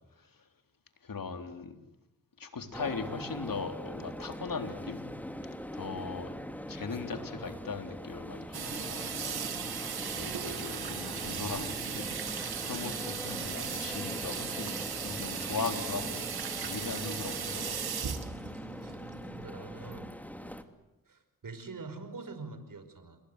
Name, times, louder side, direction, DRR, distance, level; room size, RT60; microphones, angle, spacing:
voice 1, 1.0-1.8 2.4-5.0 5.7-6.3 6.7-9.5 10.2-12.1 12.6-17.8, left 4 dB, 65° left, 7 dB, 3.8 m, -39 dB
sound 1, 2.7-20.6, equal, 5° left, 2.7 m, -42 dB
sound 2, 8.5-17.9, left 3 dB, 40° left, 4.5 m, -55 dB
Water tap faucet / Sink (filling or washing), 8.5-19.4, right 7 dB, 80° right, 2.6 m, -37 dB
voice 2, 13.1-13.5 18.8-20.2 21.1-23.2, right 4 dB, 60° right, 10 dB, 5.3 m, -45 dB
29.0 x 22.0 x 8.2 m, 0.97 s
cardioid pair, 50°, 37 cm